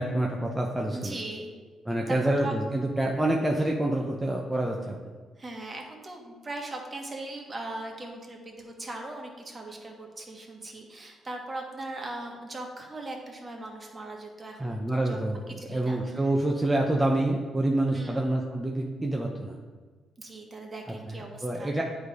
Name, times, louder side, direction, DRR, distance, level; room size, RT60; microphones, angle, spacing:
voice 1, 0.0-1.2 1.9-5.0 14.6-19.6 21.1-21.8, right 1 dB, 5° right, -1 dB, 0.7 m, -27 dB
voice 2, 0.9-1.5 2.1-2.5 5.4-15.2 15.5-16.0 17.9-18.4 20.2-21.7, right 2 dB, 30° right, 1 dB, 1.3 m, -39 dB
8.8 x 3.3 x 4.8 m, 1.4 s
cardioid pair, 90°, 0 cm